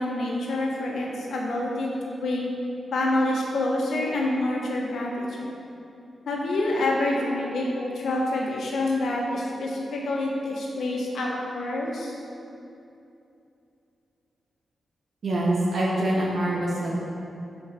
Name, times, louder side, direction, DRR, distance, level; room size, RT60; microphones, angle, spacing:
voice 1, 0.0-2.5 2.9-5.6 6.3-12.1, left 2 dB, 80° left, -2 dB, 1.1 m, -27 dB
voice 2, 15.2-16.9, right 1 dB, 60° right, -5 dB, 1.0 m, -24 dB
4.8 x 4.5 x 5.7 m, 2.7 s
wide cardioid pair, 115°, 0 cm